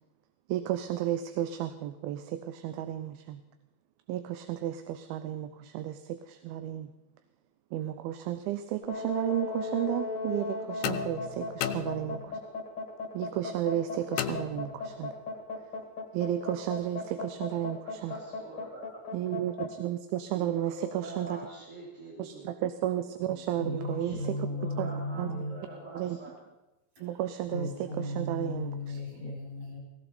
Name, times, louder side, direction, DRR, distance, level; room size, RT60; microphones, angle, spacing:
voice 1, 0.5-3.4 4.1-6.9 7.7-12.3 13.1-15.1 16.1-18.2 19.1-21.4 22.2-24.5 24.8-24.9 25.2-25.4 25.9-26.2 27.0-29.0, right 12 dB, 80° right, 10 dB, 2.4 m, -33 dB
sound 1, 8.8-19.7, left 3 dB, 40° left, 1.4 m, -36 dB
sound 2, 10.8-12.5 14.2-15.1, left 12 dB, 85° left, 2.7 m, -35 dB
voice 2, 18.1-19.0 20.3-22.5 23.6-26.3, right 1 dB, 60° right, -7 dB, 5.1 m, -44 dB
voice 3, 23.6-25.6 27.0-27.1 27.5-29.8, left 1 dB, 45° right, -4 dB, 9.2 m, -35 dB
17.5 x 17.5 x 4.3 m, 1.0 s
omnidirectional pair, 4.5 m